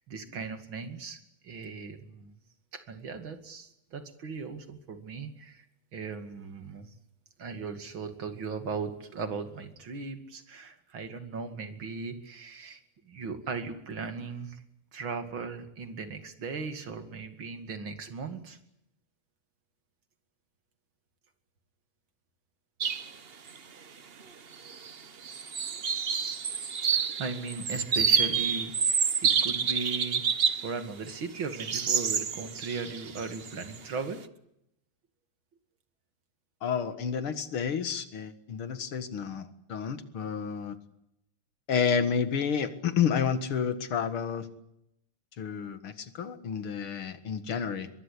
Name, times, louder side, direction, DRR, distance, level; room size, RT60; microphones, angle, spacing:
voice 1, 0.1-2.3 2.7-5.6 5.9-6.9 7.4-12.8 13.1-14.6 14.9-18.6 26.9-30.2 30.6-34.2, right 4 dB, 65° right, 8 dB, 3.1 m, -38 dB
sound 1, 22.8-23.1 23.5-23.6 24.5-24.9 25.2-30.7 31.1-33.8, right 6 dB, 45° right, 0.8 m, -28 dB
voice 2, 36.6-40.8 41.7-44.5 45.4-47.9, left 7 dB, 75° left, 11 dB, 2.5 m, -30 dB
23.0 x 22.5 x 8.4 m, 0.80 s
omnidirectional pair, 2.4 m